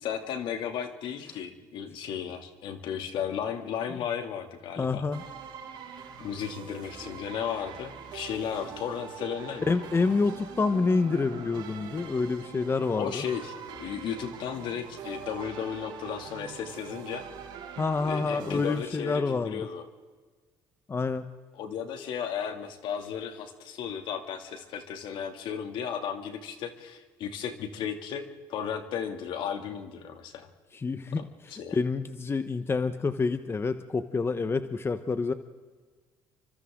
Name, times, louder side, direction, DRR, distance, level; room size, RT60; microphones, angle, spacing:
voice 1, 0.0-5.0 6.2-10.1 12.9-17.2 18.0-19.8 21.6-28.2 28.5-30.5 31.2-31.8, left 8 dB, 70° left, 6 dB, 2.7 m, -35 dB
voice 2, 4.8-5.2 9.7-13.2 17.8-19.7 20.9-21.3 30.7-31.3 31.7-35.3, left 4 dB, 30° left, 10 dB, 1.2 m, -27 dB
sound 1, 5.1-18.8, right 7 dB, 70° right, 4.4 m, -43 dB
30.0 x 25.0 x 3.9 m, 1.4 s
supercardioid pair, 80°, 8 cm